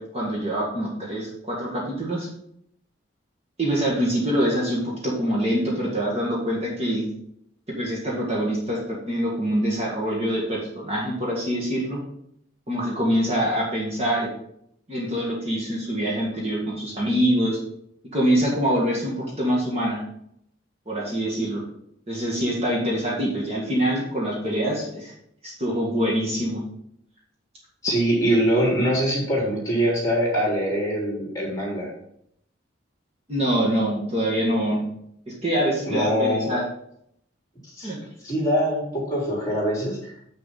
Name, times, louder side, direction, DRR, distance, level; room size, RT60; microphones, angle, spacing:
voice 1, 0.0-2.3 3.6-7.1 7.7-12.0 12.7-14.3 14.9-17.6 18.1-20.0 20.9-21.6 22.1-25.1 25.4-26.6 33.3-34.8 35.3-36.6 37.8-38.0, equal, 30° right, -4 dB, 1.9 m, -25 dB
voice 2, 27.8-31.9 35.9-36.5 37.7-37.9 38.2-40.1, equal, 15° left, -3 dB, 3.5 m, -23 dB
7.5 x 6.6 x 4.2 m, 0.72 s
head